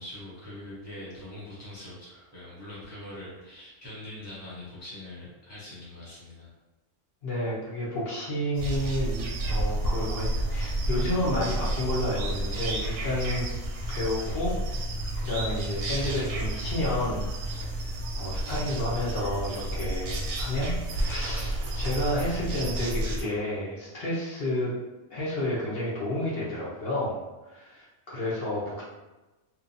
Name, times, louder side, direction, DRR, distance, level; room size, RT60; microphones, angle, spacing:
voice 1, 0.0-6.5, left 1 dB, 20° right, -9 dB, 0.5 m, -43 dB
voice 2, 7.2-13.5 13.9-14.6 15.2-17.2 17.6-24.7 25.1-27.2 27.5-28.8, left 1 dB, 55° left, -6 dB, 0.9 m, -31 dB
sound 1, 8.5-23.2, right 1 dB, 70° right, 0.8 m, -31 dB
2.8 x 2.2 x 2.5 m, 1.1 s
omnidirectional pair, 1.3 m